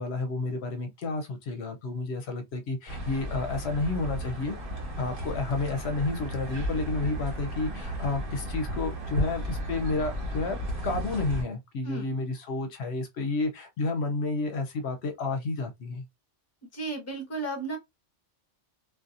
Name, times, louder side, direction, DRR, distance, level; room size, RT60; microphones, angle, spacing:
voice 1, 0.0-4.5 5.0-10.6 10.8-16.0, left 3 dB, 70° left, 0.8 m, -31 dB
sound 1, 2.9-11.4, equal, 50° right, 1.4 m, -34 dB
voice 2, 16.7-17.8, right 3 dB, 15° left, 0.7 m, -33 dB
2.6 x 2.3 x 2.4 m
omnidirectional pair, 1.2 m